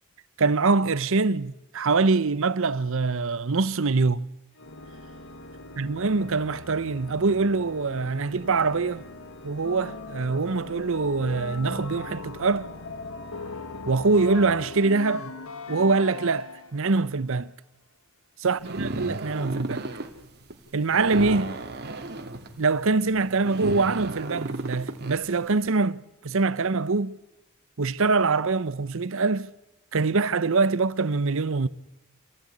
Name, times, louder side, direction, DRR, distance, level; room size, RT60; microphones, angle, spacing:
voice 1, 0.4-4.3 5.8-9.0 9.4-12.7 13.8-15.3 15.7-17.5 18.4-19.9 20.7-21.6 22.6-27.2 27.8-29.5 29.9-31.7, right 3 dB, 65° right, 0.8 m, -24 dB
Organ, 4.5-15.5, left 1 dB, 60° left, 1.6 m, -44 dB
sound 1, 9.6-16.9, left 4 dB, 85° left, 1.8 m, -39 dB
sound 2, 18.6-25.6, right 2 dB, 50° right, 2.2 m, -34 dB
27.0 x 16.0 x 9.8 m
head